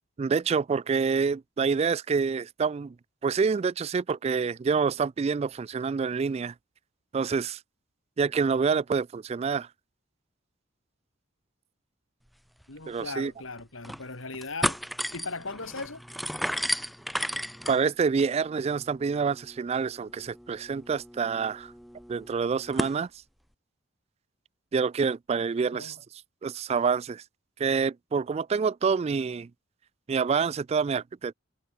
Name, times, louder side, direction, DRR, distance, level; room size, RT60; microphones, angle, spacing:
voice 1, 0.2-2.9 3.2-6.5 7.1-7.6 8.2-9.7 12.9-13.3 17.7-21.7 22.1-23.1 24.7-26.0 26.4-27.2 27.6-29.5 30.1-31.3, right 5 dB, 30° right, 0.3 m, -27 dB
sound 1, 12.6-12.7 13.0-13.1 13.6-14.0 14.3-23.0, equal, ahead, 3.2 m, -35 dB
voice 2, 12.7-14.8 15.1-16.0 25.7-26.0, left 3 dB, 80° left, 4.2 m, -38 dB
head